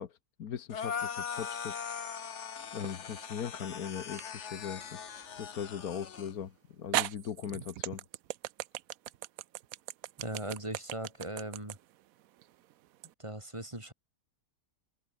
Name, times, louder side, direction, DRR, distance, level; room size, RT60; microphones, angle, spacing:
voice 1, 0.0-1.8 2.7-5.0 5.4-8.0, left 8 dB, 70° left, 1.7 m, -39 dB
sound 1, 0.7-6.3, left 7 dB, 50° left, 1.5 m, -40 dB
sound 2, 2.8-3.4 4.2-4.3 6.2-6.3 6.9-13.1, right 14 dB, 70° right, 1.0 m, -37 dB
voice 2, 10.2-11.8 13.2-13.9, right 1 dB, 20° right, 4.0 m, -39 dB
open air
omnidirectional pair, 1.6 m